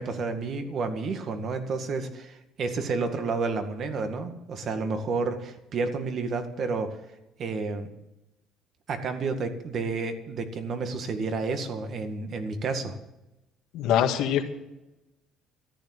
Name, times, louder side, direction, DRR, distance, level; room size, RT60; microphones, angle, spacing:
voice 1, 0.0-7.0 7.4-7.9 8.9-13.0, right 4 dB, 50° right, 7 dB, 1.9 m, -30 dB
voice 2, 13.7-14.4, left 10 dB, 80° left, 5 dB, 1.8 m, -23 dB
14.0 x 10.0 x 7.9 m, 0.94 s
cardioid pair, 120°, 0 cm